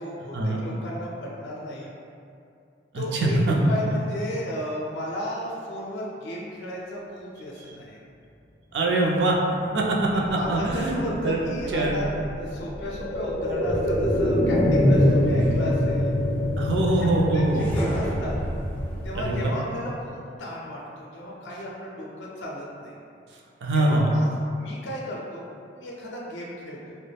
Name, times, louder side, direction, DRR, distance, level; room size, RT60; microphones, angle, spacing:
voice 1, 0.0-1.9 2.9-3.4 3.7-8.0 10.1-16.1 16.8-18.4 19.0-23.0 23.7-25.4 25.8-26.9, equal, 80° left, -4 dB, 0.4 m, -34 dB
voice 2, 2.9-3.5 8.7-9.3 9.7-11.0 11.2-11.4 11.7-12.0 16.6-17.7 19.1-19.5 23.6-24.1, right 2 dB, 70° right, -2 dB, 0.4 m, -23 dB
sound 1, 10.0-19.7 20.1-20.2, left 1 dB, 45° left, 0.8 m, -26 dB
sound 2, 13.6-19.5, left 1 dB, 10° left, 0.3 m, -30 dB
3.3 x 2.0 x 2.2 m, 2.5 s
head